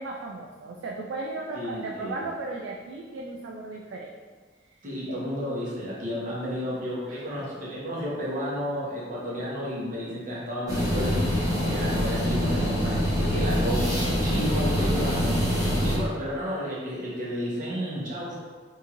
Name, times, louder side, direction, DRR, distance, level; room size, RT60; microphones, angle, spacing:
voice 1, 0.0-4.1 5.1-5.2 7.1-7.2, right 3 dB, 75° right, -1 dB, 0.3 m, -36 dB
voice 2, 1.5-2.2 4.8-11.3 11.7-13.9 14.2-18.4, equal, 45° right, -6 dB, 1.0 m, -32 dB
sound 1, 10.7-16.0, equal, 20° right, 1.0 m, -25 dB
3.6 x 2.7 x 2.9 m, 1.4 s
head